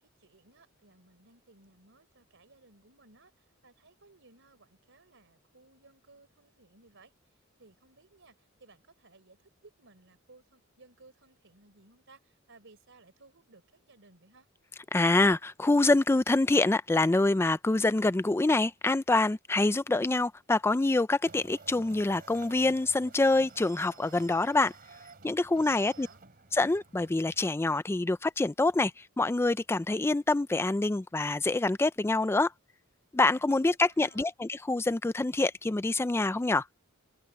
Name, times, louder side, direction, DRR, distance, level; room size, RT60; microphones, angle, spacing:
voice 1, 0.0-7.1 7.6-14.5 25.6-26.2 33.3-34.3, right 3 dB, 65° right, 3.9 m, -60 dB
voice 2, 14.9-24.7 25.2-26.1 26.5-32.5 33.1-36.7, left 2 dB, 10° left, 0.3 m, -26 dB
sound 1, 21.2-27.4, right 4 dB, 45° right, 3.1 m, -52 dB
head